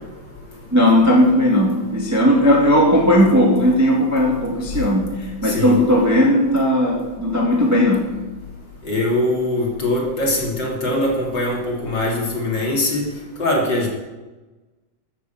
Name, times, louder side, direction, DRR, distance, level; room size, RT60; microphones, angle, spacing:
voice 1, 0.7-8.1, equal, 5° right, -2 dB, 1.5 m, -16 dB
voice 2, 5.4-5.8 8.8-13.0 13.4-13.9, left 1 dB, 35° left, -2 dB, 3.3 m, -22 dB
14.5 x 8.3 x 7.3 m, 1.2 s
omnidirectional pair, 3.6 m